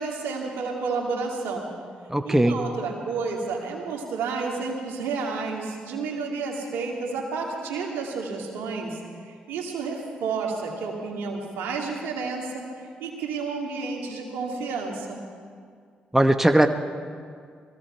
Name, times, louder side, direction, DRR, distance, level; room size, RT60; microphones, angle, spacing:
voice 1, 0.0-1.7 2.2-15.2, right 4 dB, 80° right, 0 dB, 2.3 m, -31 dB
voice 2, 2.1-2.6 16.1-16.7, right 1 dB, 10° right, 6 dB, 1.0 m, -19 dB
20.5 x 15.5 x 4.5 m, 2.1 s
supercardioid pair, 50°, 4 cm